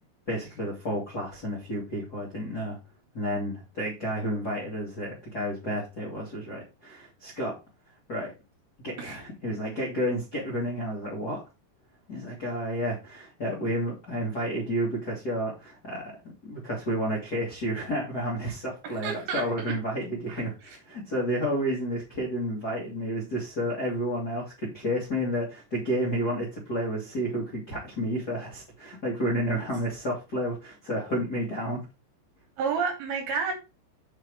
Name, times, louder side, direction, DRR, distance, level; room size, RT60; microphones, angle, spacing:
voice 1, 0.3-2.8 3.1-7.5 8.1-8.3 8.8-11.4 12.1-16.2 16.4-31.8, equal, 55° left, -5 dB, 1.1 m, -31 dB
voice 2, 18.8-19.7 20.3-20.4 32.6-33.5, right 5 dB, 65° right, 3 dB, 2.7 m, -30 dB
6.6 x 5.1 x 4.6 m, 0.28 s
omnidirectional pair, 5.5 m